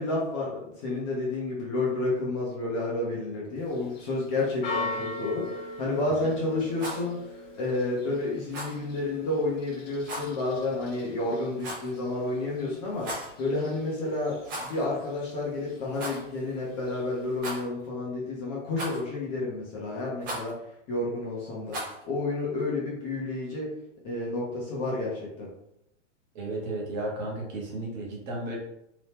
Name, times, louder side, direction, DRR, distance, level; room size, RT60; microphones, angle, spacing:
voice 1, 0.0-20.5 20.9-23.7 24.0-25.5, left 2 dB, 25° left, -4 dB, 0.6 m, -30 dB
Church bell, 3.6-17.4, left 2 dB, 50° left, 1.0 m, -42 dB
Rattle, 6.7-7.1 8.5-8.8 10.0-10.3 11.6-12.0 12.9-13.3 14.4-14.9 15.1-15.2 15.9-16.2 17.4-17.9 18.8-19.2 20.2-20.5 21.7-22.0, right 1 dB, 20° right, 0.4 m, -36 dB
voice 2, 26.3-28.6, right 2 dB, 35° right, -2 dB, 0.8 m, -33 dB
2.9 x 2.2 x 3.3 m, 0.80 s
hypercardioid pair, 150°, 38 cm